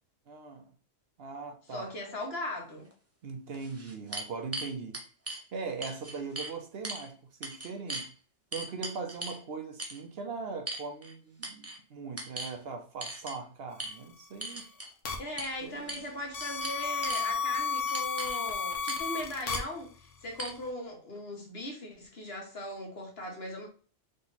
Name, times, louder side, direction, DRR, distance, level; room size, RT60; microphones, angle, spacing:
voice 1, 0.3-0.7 1.2-1.9 3.2-5.0 5.5-8.1 8.5-14.6 15.6-16.0, right 4 dB, 60° right, 0.8 m, -40 dB
voice 2, 1.7-2.9 15.2-23.7, left 1 dB, 55° left, 1.5 m, -39 dB
sound 1, 2.9-3.0 3.5-5.4 5.8-6.5 6.8-7.1 7.4-8.1 8.5-9.4 9.8-10.0 10.7-11.1 11.4-11.8 12.2-12.6 13.0-13.4 13.8-13.9 14.4-14.9 15.4-15.5 15.9-16.1 16.4-17.3 17.9-18.4 18.9-19.1 19.5-19.6 20.4-20.5, right 2 dB, 20° right, 0.4 m, -38 dB
sound 2, 15.1-15.2 16.3-19.6, left 5 dB, 80° left, 1.2 m, -32 dB
3.8 x 2.9 x 3.9 m
omnidirectional pair, 1.3 m